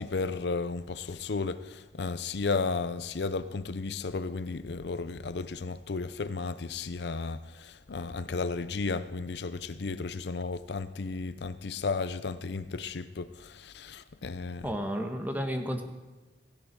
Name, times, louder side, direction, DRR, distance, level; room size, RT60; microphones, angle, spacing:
voice 1, 0.0-14.7, left 4 dB, 70° left, 0.6 m, -34 dB
voice 2, 14.6-15.8, equal, 10° right, 1.4 m, -32 dB
17.0 x 15.5 x 4.7 m
head